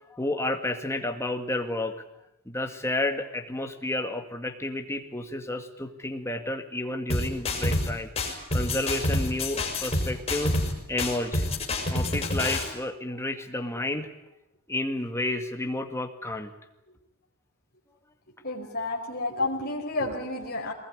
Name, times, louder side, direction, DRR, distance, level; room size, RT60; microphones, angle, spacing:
voice 1, 0.1-2.0 2.5-8.1 8.5-10.6 10.9-11.5 11.9-14.1 14.7-16.5, left 1 dB, 10° left, 5 dB, 2.1 m, -31 dB
sound 1, 7.1-7.9 8.2-10.7 11.0-12.7, left 1 dB, 25° left, 6.0 m, -27 dB
voice 2, 18.4-20.7, left 2 dB, 45° left, -1 dB, 4.7 m, -30 dB
23.5 x 20.5 x 9.8 m, 0.89 s
head